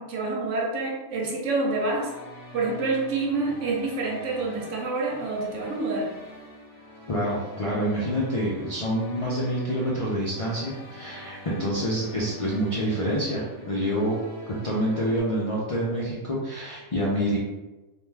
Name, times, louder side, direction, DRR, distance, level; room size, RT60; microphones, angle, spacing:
voice 1, 0.0-2.1 2.5-6.1, right 3 dB, 75° right, -1 dB, 1.0 m, -27 dB
sound 1, 1.5-15.2, left 1 dB, 25° right, 0.7 m, -45 dB
voice 2, 7.1-14.2 14.5-17.4, equal, 55° left, -6 dB, 0.3 m, -27 dB
2.5 x 2.2 x 3.2 m, 1.1 s
omnidirectional pair, 1.3 m